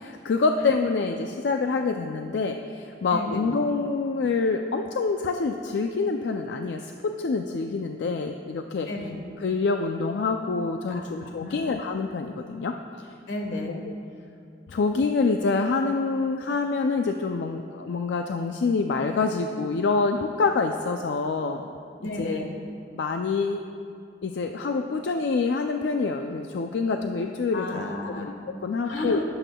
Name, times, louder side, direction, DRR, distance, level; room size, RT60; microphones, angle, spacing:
voice 1, 0.0-8.9 9.4-13.1 13.7-13.9 14.7-21.7 22.0-22.5 22.9-23.8 24.2-27.8 28.2-29.2, left 4 dB, 70° left, 5 dB, 0.4 m, -26 dB
voice 2, 3.1-3.5 8.9-9.2 10.9-11.7 13.3-13.7 22.0-22.5 27.5-28.3 28.8-29.2, left 2 dB, 90° left, 2 dB, 1.3 m, -33 dB
18.5 x 7.8 x 2.3 m, 2.5 s
head